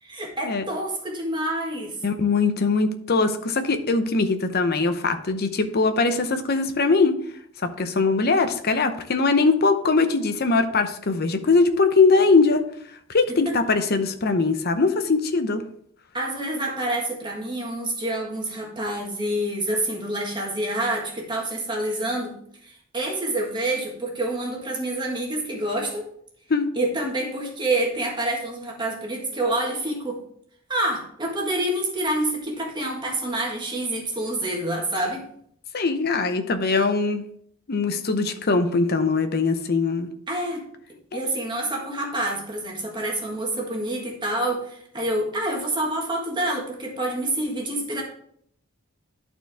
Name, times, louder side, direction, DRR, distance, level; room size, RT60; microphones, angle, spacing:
voice 1, 0.0-1.9 13.3-13.5 16.1-22.3 22.6-26.0 26.7-30.2 30.7-35.2 40.3-40.6 41.1-48.0, right 1 dB, 20° right, 0 dB, 1.6 m, -27 dB
voice 2, 2.0-7.2 7.6-12.6 13.1-15.6 26.5-26.7 35.7-37.3 37.7-40.1, left 4 dB, 50° left, 8 dB, 0.7 m, -21 dB
11.5 x 4.5 x 3.5 m, 0.65 s
head